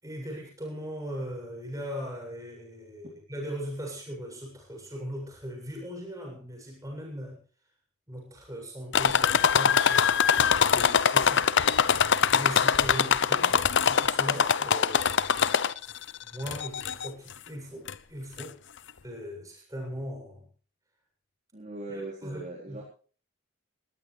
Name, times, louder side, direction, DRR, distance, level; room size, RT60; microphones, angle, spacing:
voice 1, 0.0-7.4 8.1-12.0 12.3-15.3 16.2-18.6 19.0-20.5 21.9-22.4 22.7-22.8, equal, 15° right, 1 dB, 7.6 m, -39 dB
sound 1, 8.9-16.0 16.5-17.1 17.9-18.0 18.4-18.5, left 7 dB, 60° left, 0.7 m, -23 dB
voice 2, 21.5-22.8, right 2 dB, 35° right, -4 dB, 4.2 m, -39 dB
20.0 x 18.0 x 3.3 m, 0.40 s
head